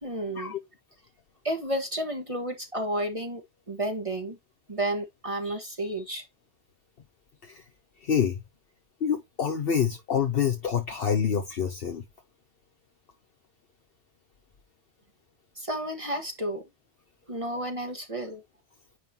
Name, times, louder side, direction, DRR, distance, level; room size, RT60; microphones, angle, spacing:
voice 1, 0.0-0.5 1.4-3.4 3.7-4.4 4.7-6.2 15.6-16.6 17.3-18.4, right 1 dB, 30° right, 1.4 m, -31 dB
voice 2, 8.0-8.3 9.0-12.0, left 7 dB, 60° left, 1.1 m, -26 dB
9.7 x 3.8 x 2.8 m
omnidirectional pair, 1.1 m